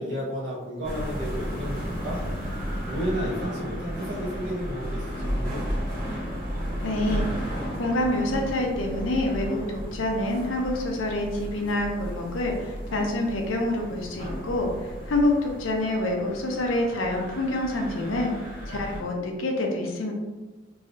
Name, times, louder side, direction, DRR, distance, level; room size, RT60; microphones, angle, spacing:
voice 1, 0.0-2.2 2.9-5.7, equal, 70° right, -7 dB, 1.3 m, -32 dB
sound 1, 0.8-19.0, equal, 45° right, 1.3 m, -34 dB
voice 2, 6.8-7.3 7.7-14.7 15.1-18.3 18.7-20.1, left 1 dB, 85° left, 1 dB, 0.6 m, -27 dB
3.1 x 2.7 x 2.7 m, 1.2 s
head